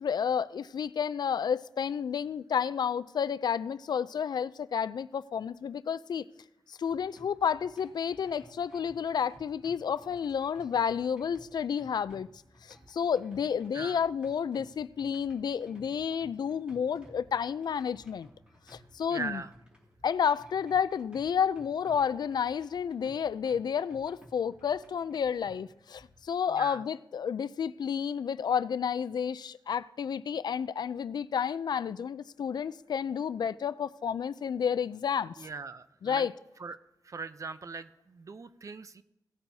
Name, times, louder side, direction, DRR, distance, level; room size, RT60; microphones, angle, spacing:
voice 1, 0.0-6.3 6.7-12.3 12.6-18.3 18.7-19.4 20.0-35.3 36.0-36.3, left 7 dB, 75° left, 0.3 m, -31 dB
sound 1, 6.9-26.3, equal, 15° right, 2.3 m, -57 dB
voice 2, 19.1-19.5 26.5-26.8 35.4-36.3 36.6-36.8 37.0-39.0, right 4 dB, 45° right, 0.5 m, -40 dB
17.0 x 8.6 x 2.7 m
wide cardioid pair, 115°, 7 cm